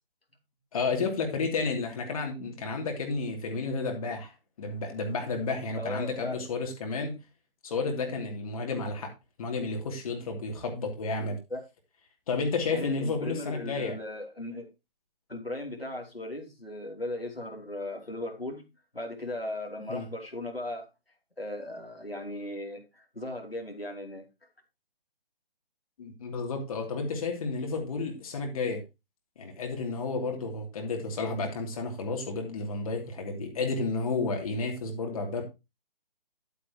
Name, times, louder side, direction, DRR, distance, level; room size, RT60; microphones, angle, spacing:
voice 1, 0.7-4.3 4.6-7.1 7.6-9.1 9.4-11.4 12.3-13.9 19.9-20.1 26.0-28.8 29.4-35.4, left 3 dB, 35° left, 2.9 m, -31 dB
voice 2, 5.8-6.5 11.5-11.6 12.7-14.7 15.3-18.7 18.9-20.9 21.4-24.3, left 1 dB, 90° left, 3.0 m, -37 dB
11.5 x 8.4 x 3.0 m
figure-of-eight pair, 140°, 29 cm